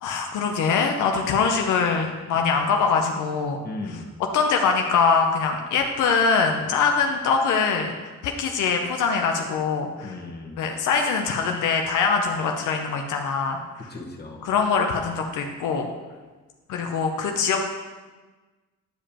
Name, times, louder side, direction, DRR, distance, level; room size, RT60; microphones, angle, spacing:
voice 1, 0.0-3.6 4.3-7.9 8.2-10.1 10.6-13.6 14.4-15.9 16.7-17.6, left 5 dB, 80° left, 3 dB, 0.7 m, -23 dB
voice 2, 3.6-4.1 6.6-6.8 10.0-10.7 13.9-14.5, left 2 dB, 35° left, -1 dB, 1.3 m, -37 dB
10.5 x 5.1 x 2.9 m, 1.3 s
cardioid pair, 90°, 30 cm